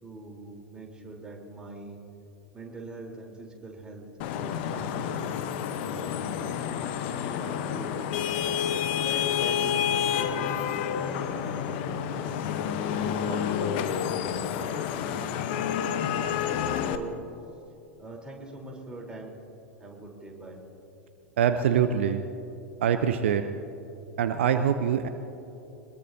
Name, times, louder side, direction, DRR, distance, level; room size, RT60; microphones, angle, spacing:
voice 1, 0.0-2.0 2.5-5.3 5.8-6.7 7.4-8.1 8.8-12.4 12.9-16.3 16.7-17.1 18.0-19.4 19.8-20.6, right 2 dB, 10° right, -1 dB, 3.7 m, -42 dB
Vehicle horn car horn honking / Traffic noise roadway noise, 4.2-17.0, left 8 dB, 50° left, 1.0 m, -29 dB
voice 2, 21.4-22.3 22.8-23.4 24.2-25.1, right 8 dB, 60° right, 9 dB, 0.7 m, -24 dB
24.5 x 21.0 x 2.8 m, 2.9 s
figure-of-eight pair, 90°, 7 cm